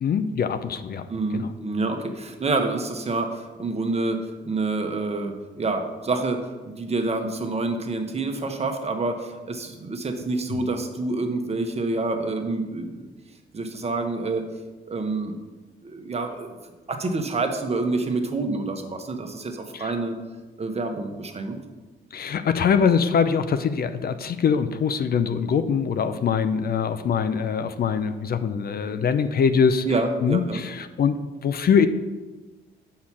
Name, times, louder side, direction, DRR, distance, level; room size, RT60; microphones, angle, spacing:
voice 1, 0.0-1.0 1.3-1.5 19.7-19.9 22.1-29.9 30.2-31.9, left 6 dB, 50° left, 10 dB, 0.6 m, -23 dB
voice 2, 1.1-13.1 13.5-14.5 14.9-15.4 15.8-16.6 16.9-20.2 20.6-21.6 29.8-30.6, right 3 dB, 30° right, 5 dB, 1.2 m, -27 dB
6.6 x 5.7 x 6.1 m, 1.2 s
cardioid pair, 90°, 20 cm